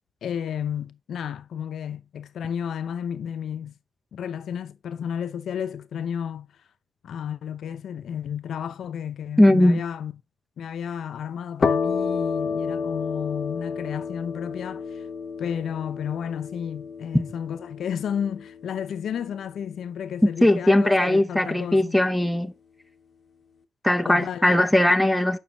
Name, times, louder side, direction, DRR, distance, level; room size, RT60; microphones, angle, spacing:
voice 1, 0.2-3.7 4.1-6.5 7.0-10.2 10.6-15.0 15.4-22.0 24.0-24.4, left 8 dB, 60° left, 0.7 m, -32 dB
voice 2, 9.4-9.8 20.4-22.5 23.8-25.4, left 1 dB, ahead, 0.6 m, -19 dB
sound 1, 11.6-19.1, left 5 dB, 30° left, 1.0 m, -30 dB
8.8 x 6.1 x 3.0 m
wide cardioid pair, 170°, 0 cm